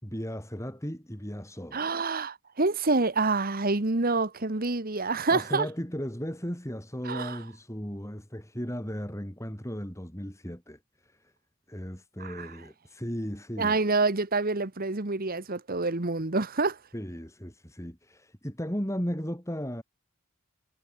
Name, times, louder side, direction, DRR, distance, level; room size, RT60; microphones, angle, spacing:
voice 1, 0.0-1.9 5.3-11.3 11.7-13.8 16.9-19.8, equal, 15° left, 5.4 m, -36 dB
voice 2, 1.7-5.7 7.0-7.4 12.2-12.5 13.6-16.8, right 3 dB, 40° right, 1.4 m, -27 dB
head